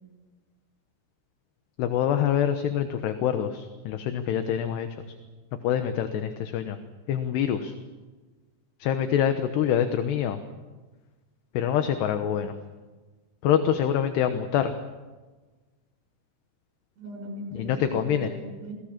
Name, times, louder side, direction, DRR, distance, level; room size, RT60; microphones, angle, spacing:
voice 1, 1.8-4.9 5.6-6.8 7.1-7.7 8.8-10.4 11.5-12.5 13.4-14.7 17.5-18.3, left 9 dB, 75° left, 8 dB, 3.1 m, -25 dB
voice 2, 17.0-18.7, right 1 dB, 60° right, 3 dB, 8.1 m, -39 dB
27.5 x 20.5 x 7.4 m, 1.3 s
omnidirectional pair, 5.2 m